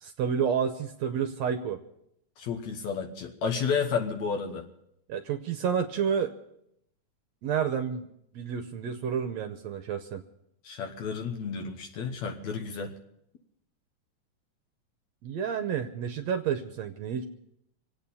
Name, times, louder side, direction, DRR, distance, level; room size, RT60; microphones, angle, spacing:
voice 1, 0.0-1.8 5.1-6.3 7.4-8.1 8.3-10.2 15.2-17.2, right 7 dB, 70° right, 7 dB, 1.9 m, -30 dB
voice 2, 2.4-4.7 10.6-12.9, left 6 dB, 70° left, 3 dB, 2.4 m, -31 dB
26.0 x 8.8 x 5.5 m, 0.77 s
omnidirectional pair, 3.4 m